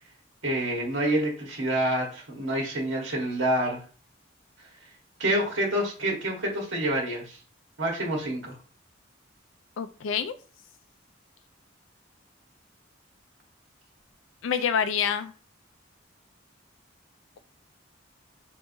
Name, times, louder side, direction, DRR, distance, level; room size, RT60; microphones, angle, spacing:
voice 1, 0.4-3.8 5.2-7.4 7.8-8.6, right 1 dB, 85° right, 0 dB, 1.5 m, -27 dB
voice 2, 9.8-10.3 14.4-15.3, left 7 dB, 85° left, 9 dB, 0.4 m, -27 dB
5.3 x 3.4 x 2.7 m, 0.39 s
head